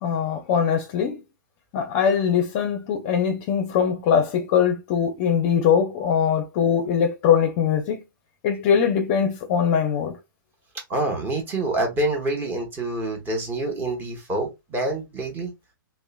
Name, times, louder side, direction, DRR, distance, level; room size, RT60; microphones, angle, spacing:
voice 1, 0.0-1.2 1.7-8.0 8.4-10.2, left 7 dB, 35° left, 0.5 m, -22 dB
voice 2, 10.9-15.5, right 2 dB, 15° right, 0.8 m, -26 dB
2.9 x 2.0 x 2.2 m
hypercardioid pair, 125°, 11 cm